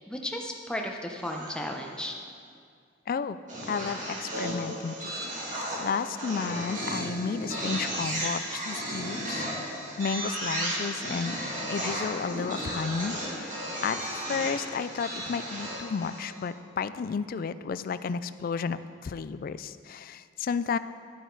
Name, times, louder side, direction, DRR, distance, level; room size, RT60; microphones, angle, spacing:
voice 1, 0.1-2.2, left 1 dB, 5° left, 1 dB, 0.8 m, -34 dB
sound 1, 1.2-1.9 3.5-16.4, right 1 dB, 45° right, 2.4 m, -34 dB
voice 2, 3.1-3.4 3.7-9.5 10.0-11.4 11.7-13.5 13.8-20.8, left 5 dB, 50° left, 14 dB, 0.3 m, -32 dB
11.5 x 9.1 x 3.9 m, 2.2 s
head